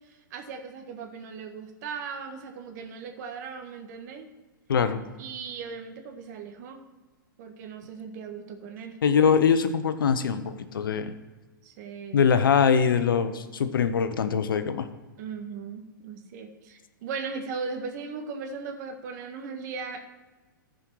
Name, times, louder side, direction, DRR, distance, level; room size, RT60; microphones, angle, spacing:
voice 1, 0.3-4.3 5.2-6.8 7.4-9.0 11.6-12.2 15.2-20.1, right 5 dB, 55° right, 4 dB, 1.6 m, -38 dB
voice 2, 4.7-5.0 9.0-11.1 12.1-14.9, left 6 dB, 80° left, 10 dB, 0.9 m, -23 dB
14.5 x 5.2 x 4.6 m, 1.2 s
hypercardioid pair, 115°, 11 cm